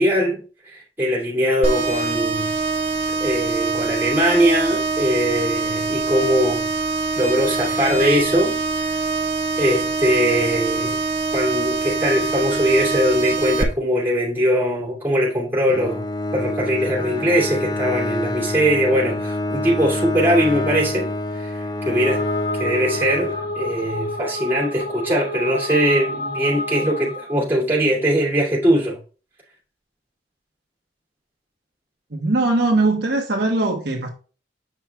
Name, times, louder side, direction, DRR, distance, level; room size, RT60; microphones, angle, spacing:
voice 1, 0.0-2.5 3.2-6.7 7.2-9.0 9.6-11.0 11.3-16.0 16.3-21.1 21.3-22.2 22.5-29.0, equal, 10° right, 2.4 m, -21 dB
sound 1, 1.6-13.6, right 3 dB, 35° right, 1.0 m, -24 dB
Bowed string instrument, 15.7-23.9, left 2 dB, 25° left, 0.4 m, -27 dB
sound 2, 21.7-27.4, left 1 dB, 65° left, 3.7 m, -29 dB
voice 2, 32.1-34.1, right 2 dB, 65° right, 1.1 m, -20 dB
8.0 x 5.7 x 2.3 m
head